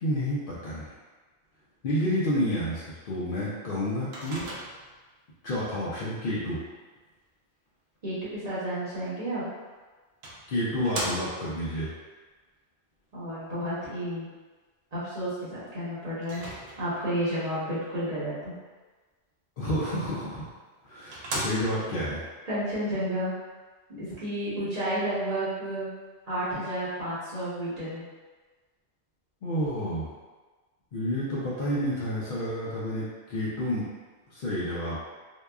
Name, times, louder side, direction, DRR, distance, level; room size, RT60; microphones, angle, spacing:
voice 1, 0.0-0.9 1.8-4.4 5.4-6.6 10.5-11.9 19.6-20.5 20.8-22.2 29.4-30.1 30.9-33.9 34.3-35.0, equal, 60° left, -8 dB, 0.6 m, -30 dB
Microwave oven, 4.1-5.0 9.4-9.5 10.2-11.6 16.2-17.1 20.2-20.3 20.8-20.9 21.1-22.0, right 1 dB, 70° right, 0.8 m, -36 dB
voice 2, 8.0-9.4 13.1-14.3 14.9-16.4 16.8-18.5 22.5-23.3 24.0-25.9 26.3-28.0, right 1 dB, 40° right, -11 dB, 0.9 m, -31 dB
2.8 x 2.2 x 2.2 m, 1.3 s
omnidirectional pair, 1.2 m